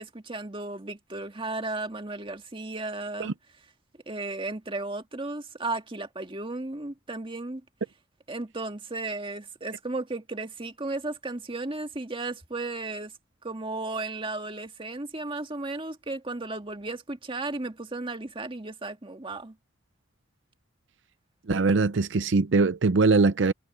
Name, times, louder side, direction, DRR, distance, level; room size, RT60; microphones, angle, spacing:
voice 1, 0.0-3.3 4.1-7.6 8.3-13.1 13.4-19.6, right 2 dB, 25° right, 1.8 m, -34 dB
voice 2, 21.5-23.5, right 3 dB, 70° right, 0.6 m, -22 dB
head